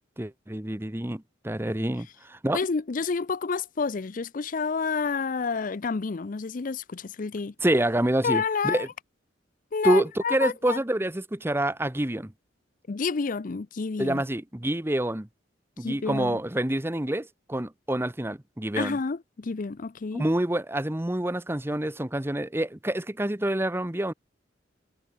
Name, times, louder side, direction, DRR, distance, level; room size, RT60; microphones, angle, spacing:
voice 1, 0.2-2.6 7.6-8.9 9.8-12.3 14.0-15.3 15.8-19.0 20.1-24.1, right 1 dB, 15° right, 0.9 m, -27 dB
voice 2, 2.5-7.5 8.2-8.9 9.7-10.8 12.9-14.2 15.8-16.4 18.8-20.2, left 5 dB, 45° left, 0.5 m, -29 dB
head